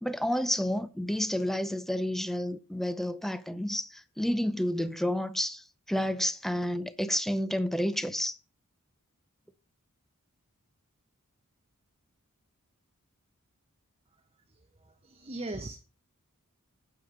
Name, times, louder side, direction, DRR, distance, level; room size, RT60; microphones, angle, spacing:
voice 1, 0.0-8.4, equal, ahead, 0.6 m, -30 dB
voice 2, 14.8-15.8, right 2 dB, 25° right, 0.9 m, -39 dB
9.4 x 6.7 x 5.4 m
head